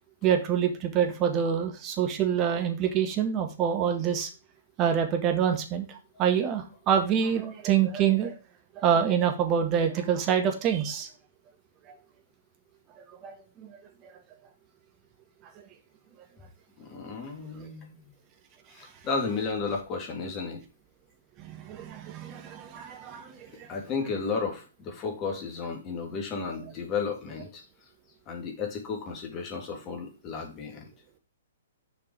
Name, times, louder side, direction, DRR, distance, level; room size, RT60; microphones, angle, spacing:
voice 1, 0.2-4.3 4.8-8.4 8.7-11.1 13.0-13.7 17.6-17.7 21.4-23.7, right 8 dB, 30° right, 5 dB, 1.8 m, -26 dB
voice 2, 16.8-18.0 18.7-20.6 23.5-27.6 28.3-30.9, left 5 dB, 25° left, 2 dB, 2.7 m, -33 dB
7.0 x 5.3 x 4.7 m, 0.32 s
figure-of-eight pair, 115°, 0 cm